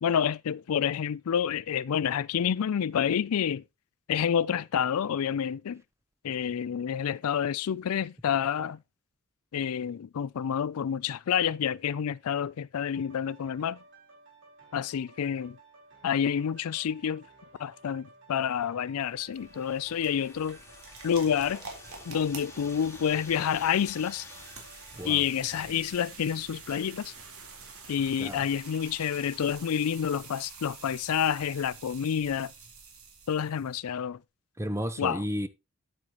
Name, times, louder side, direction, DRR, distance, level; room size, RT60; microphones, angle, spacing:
voice 1, 0.0-3.6 4.1-5.8 6.2-8.8 9.5-13.8 14.7-15.6 16.0-17.3 17.6-20.6 21.0-21.6 22.1-24.3 25.0-27.1 27.9-32.5 33.3-34.2 35.0-35.2, left 8 dB, 75° left, 0.4 m, -28 dB
sound 1, 12.9-26.6 27.1-27.2, right 3 dB, 55° right, 4.5 m, -56 dB
sound 2, 18.9-33.8, right 4 dB, 75° right, 3.9 m, -47 dB
sound 3, 19.2-25.3, left 3 dB, 10° left, 3.0 m, -51 dB
voice 2, 34.6-35.5, equal, 10° right, 0.8 m, -32 dB
9.9 x 8.9 x 3.0 m
head